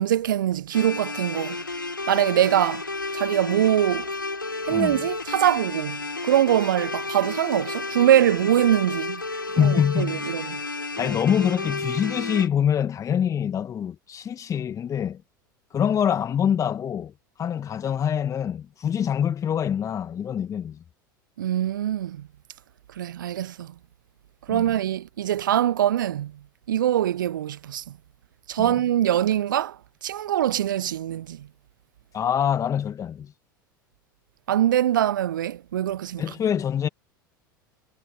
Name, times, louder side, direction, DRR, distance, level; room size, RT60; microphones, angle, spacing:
voice 1, 0.0-1.6 2.1-2.9 3.1-4.1 4.6-9.2 9.6-10.6 21.4-22.3 23.0-23.7 24.5-26.4 26.7-28.0 28.5-31.5 34.5-36.3, right 11 dB, 70° right, 0.5 m, -23 dB
sound 1, 0.7-12.5, left 3 dB, 90° left, 3.9 m, -32 dB
voice 2, 9.4-10.3 11.0-15.2 15.7-17.1 17.4-20.8 24.5-24.6 28.6-28.8 32.1-33.3 36.2-36.9, left 8 dB, 30° left, 1.9 m, -25 dB
figure-of-eight pair, 80°, 11 cm